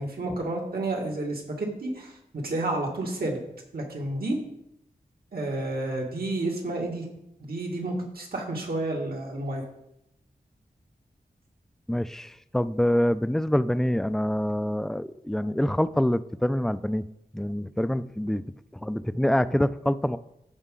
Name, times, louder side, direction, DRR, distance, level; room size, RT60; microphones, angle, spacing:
voice 1, 0.0-3.4 3.7-4.4 5.3-7.1 7.4-9.6, right 2 dB, 80° right, 0 dB, 1.9 m, -30 dB
voice 2, 11.9-17.0 17.3-18.4 18.7-20.2, left 1 dB, 5° left, 14 dB, 0.3 m, -26 dB
14.0 x 4.9 x 3.8 m, 0.80 s
wide cardioid pair, 100°, 15 cm